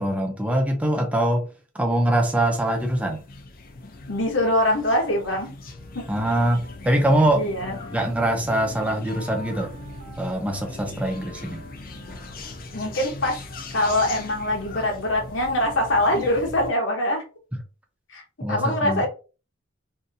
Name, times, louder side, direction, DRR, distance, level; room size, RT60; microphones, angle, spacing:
voice 1, 0.0-1.5 1.7-3.2 6.1-7.4 7.9-9.7 10.2-11.7 18.4-19.0, right 1 dB, 5° right, 0.5 m, -23 dB
sound 1, 2.3-16.7, left 2 dB, 45° left, 0.5 m, -40 dB
voice 2, 4.1-5.5 5.9-6.1 7.3-7.8 12.7-13.4 13.7-17.2 18.1-18.2 18.5-19.1, left 1 dB, 65° left, 0.9 m, -23 dB
Wind instrument woodwind instrument, 5.6-6.8 7.1-7.3 7.6-12.9, equal, 85° right, 1.4 m, -46 dB
3.8 x 2.6 x 2.6 m
head